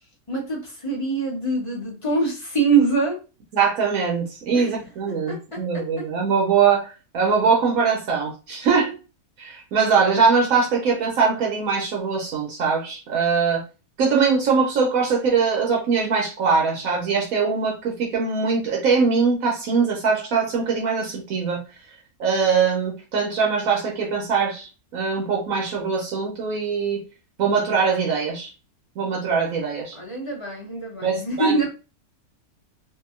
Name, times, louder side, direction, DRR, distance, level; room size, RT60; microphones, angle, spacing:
voice 1, 0.3-3.2 4.5-4.7 5.1-6.0 29.9-31.7, right 4 dB, 30° left, -3 dB, 0.7 m, -24 dB
voice 2, 3.5-8.9 9.4-13.6 14.0-21.6 22.2-27.0 27.4-28.5 29.0-30.0 31.0-31.6, right 5 dB, 75° right, 0 dB, 1.1 m, -22 dB
2.8 x 2.5 x 2.3 m, 0.32 s
omnidirectional pair, 1.6 m